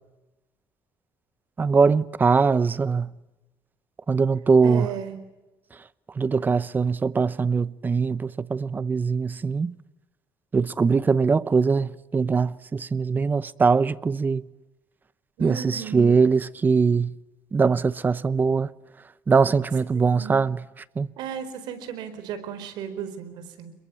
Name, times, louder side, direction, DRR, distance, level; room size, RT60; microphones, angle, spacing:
voice 1, 1.6-3.1 4.1-4.9 6.2-9.8 10.5-14.4 15.4-17.1 17.5-18.7 19.3-20.6 21.0-21.1, right 5 dB, 25° right, 0.9 m, -22 dB
voice 2, 4.6-5.2 15.4-16.2 19.9-20.5 21.2-23.7, right 8 dB, 85° right, 4.5 m, -35 dB
28.5 x 22.5 x 8.5 m
cardioid pair, 120°, 7 cm